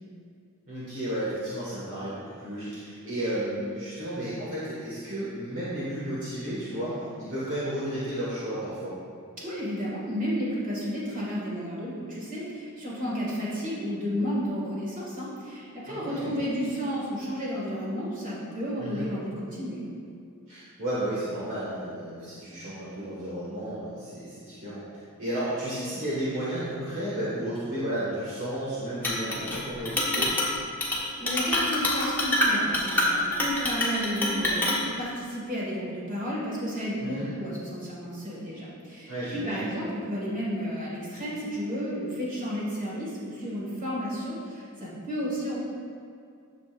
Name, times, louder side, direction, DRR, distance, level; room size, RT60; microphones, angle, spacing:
voice 1, 0.7-8.9 15.9-16.4 18.8-19.1 20.5-24.8 25.2-30.3 37.0-37.3 39.1-39.7, right 1 dB, 60° right, -10 dB, 1.8 m, -33 dB
voice 2, 9.4-19.8 30.8-45.6, equal, 40° right, -7 dB, 2.0 m, -32 dB
Chink clink, 29.0-29.6 29.9-30.5 30.8-31.0 31.3-34.8, left 1 dB, 10° left, 1.4 m, -26 dB
11.5 x 6.6 x 2.6 m, 2.4 s
head